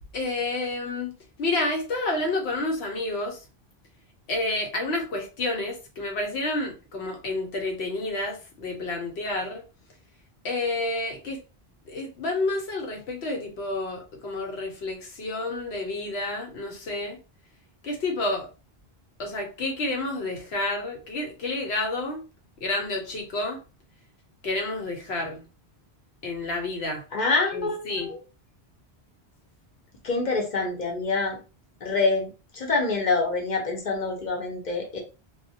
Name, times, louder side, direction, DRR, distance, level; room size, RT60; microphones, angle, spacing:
voice 1, 0.1-1.1 1.4-3.4 4.3-9.6 10.4-11.4 11.9-17.2 17.8-18.5 19.2-22.2 22.6-23.6 24.4-25.4 26.2-27.0 27.5-28.1, left 2 dB, 85° left, 3 dB, 1.0 m, -29 dB
voice 2, 27.1-28.2 30.0-31.4 31.8-35.0, left 3 dB, 50° left, 1 dB, 0.7 m, -26 dB
2.2 x 2.1 x 2.6 m, 0.32 s
omnidirectional pair, 1.1 m